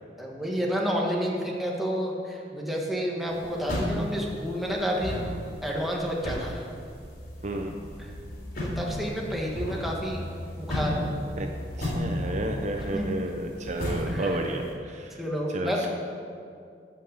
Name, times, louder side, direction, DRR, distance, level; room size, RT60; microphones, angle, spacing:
voice 1, 0.2-5.2 5.6-6.6 8.6-10.2 10.6-11.1 12.9-13.1 14.1-14.4 15.2-15.9, equal, ahead, -3 dB, 1.5 m, -30 dB
sound 1, 3.3-14.7, left 1 dB, 60° left, 3.2 m, -34 dB
voice 2, 7.4-7.7 11.4-11.5 11.8-15.2 15.5-15.9, right 1 dB, 45° right, 3 dB, 0.7 m, -31 dB
13.5 x 5.6 x 6.6 m, 2.3 s
head